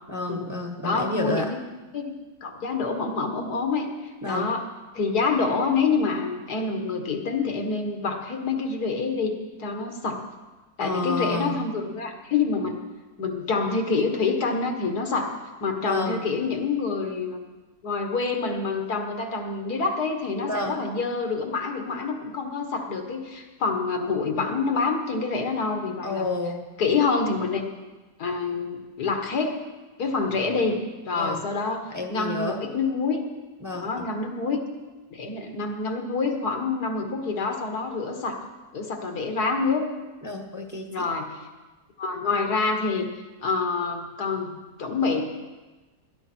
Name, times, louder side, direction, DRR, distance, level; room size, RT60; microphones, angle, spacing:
voice 1, 0.1-1.5 4.2-4.5 10.8-11.6 15.8-16.2 20.4-20.8 26.0-26.6 31.1-31.4 31.9-32.6 33.6-34.1 40.2-41.1, left 2 dB, 10° right, 3 dB, 1.1 m, -30 dB
voice 2, 0.8-1.6 1.9-2.1 2.4-4.7 4.9-9.3 9.6-10.2 10.8-12.8 13.2-15.3 15.6-17.4 17.8-26.3 26.8-27.6 28.2-29.6 30.0-30.8 31.1-31.8 32.1-33.2 33.7-34.6 35.1-38.4 38.7-39.8 40.9-41.3 42.0-43.1 43.4-45.2, left 4 dB, 75° left, 4 dB, 2.1 m, -27 dB
19.5 x 11.0 x 4.5 m, 1.2 s
omnidirectional pair, 1.7 m